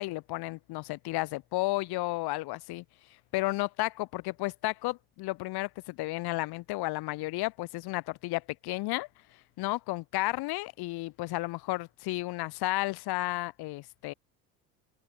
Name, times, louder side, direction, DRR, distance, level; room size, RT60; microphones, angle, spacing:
voice 1, 0.0-2.8 3.3-9.1 9.6-14.1, left 20 dB, 65° left, 1.5 m, -32 dB
open air
hypercardioid pair, 75°, 41 cm